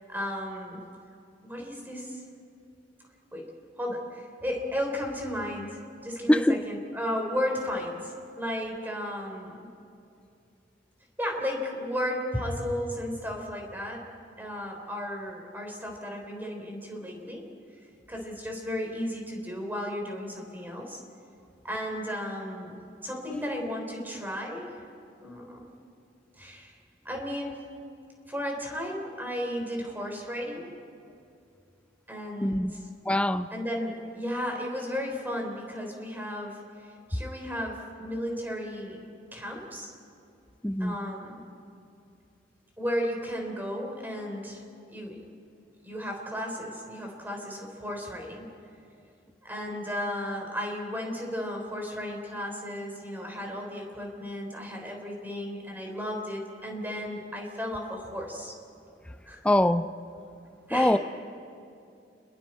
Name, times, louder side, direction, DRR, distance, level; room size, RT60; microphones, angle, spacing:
voice 1, 0.1-0.8 1.4-2.2 3.3-3.5 3.8-9.7 11.2-14.0 14.4-17.5 18.1-21.0 21.6-24.8 25.2-25.7 26.4-26.8 27.0-27.6 28.3-30.7 32.1-32.8 33.5-39.0 39.3-39.9 40.8-41.4 42.8-44.6 44.9-45.2 45.8-48.5 49.4-58.5 59.3-59.5 60.7-61.0, equal, 10° right, 3.7 m, -34 dB
voice 2, 6.3-6.6 32.4-32.7 33.1-33.5 40.6-41.0 59.4-59.8 60.7-61.0, left 1 dB, 5° left, 0.5 m, -23 dB
30.0 x 21.5 x 4.4 m
head